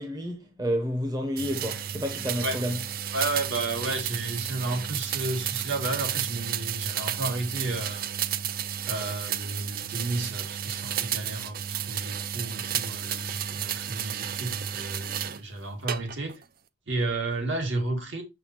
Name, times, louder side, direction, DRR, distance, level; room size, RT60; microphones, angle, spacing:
voice 1, 0.0-2.8, equal, 20° right, 0.9 m, -30 dB
sound 1, 1.4-15.4 15.9-16.4, right 9 dB, 45° right, 0.4 m, -32 dB
voice 2, 3.1-8.1 8.9-16.4 16.9-18.2, right 2 dB, 65° right, 2.4 m, -32 dB
6.9 x 5.6 x 2.9 m
head